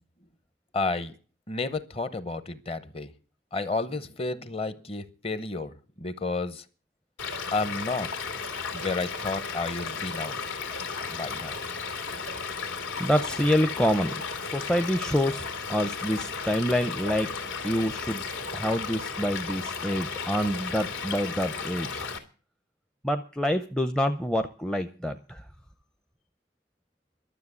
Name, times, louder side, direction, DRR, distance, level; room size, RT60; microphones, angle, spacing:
voice 1, 0.7-1.1 1.5-3.1 3.5-6.6 7.5-8.1 8.7-10.4 11.1-11.6, left 3 dB, 30° left, 0.9 m, -31 dB
Stream / Liquid, 7.2-22.2, left 5 dB, 85° left, 2.6 m, -34 dB
voice 2, 13.0-14.1 14.4-18.2 18.5-22.0 23.0-25.5, equal, 5° left, 0.5 m, -27 dB
12.5 x 7.3 x 9.6 m
head